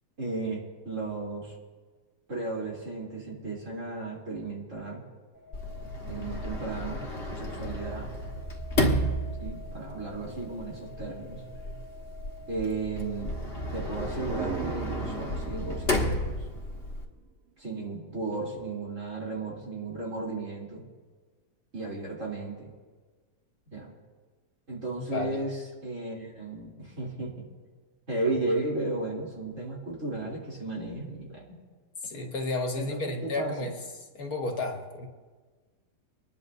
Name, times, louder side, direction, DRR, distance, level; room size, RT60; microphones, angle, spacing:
voice 1, 0.2-1.6 2.3-5.0 6.0-7.0 7.3-8.1 9.4-11.4 12.5-13.4 13.7-16.4 17.6-20.8 21.7-22.7 23.7-23.9 24.7-27.4 28.1-31.6 32.8-33.7, right 3 dB, 50° right, -4 dB, 3.6 m, -34 dB
sound 1, 5.3-15.8, left 2 dB, 30° right, 3.3 m, -49 dB
Sliding door, 5.5-17.0, left 1 dB, 40° left, 1.7 m, -33 dB
sound 2, 14.0-17.6, right 7 dB, 75° right, 0.6 m, -40 dB
voice 2, 25.1-25.4 32.0-33.8 34.1-35.1, left 2 dB, 65° left, 2 dB, 1.9 m, -32 dB
26.5 x 10.5 x 2.7 m, 1.4 s
omnidirectional pair, 1.7 m